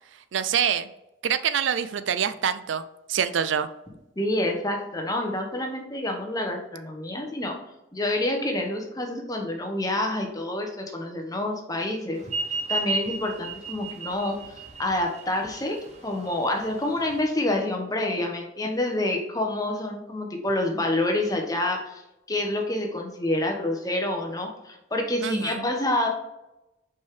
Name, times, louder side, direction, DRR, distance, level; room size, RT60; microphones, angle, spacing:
voice 1, 0.3-0.9 1.2-2.8 3.1-3.7 25.2-25.7, right 8 dB, 75° right, 12 dB, 0.4 m, -25 dB
voice 2, 4.2-7.5 7.9-12.2 12.7-22.0 22.3-26.1, left 1 dB, 20° left, 2 dB, 1.1 m, -28 dB
sound 1, 12.2-17.2, right 3 dB, 35° right, 1.1 m, -33 dB
5.5 x 4.7 x 4.8 m, 0.91 s
head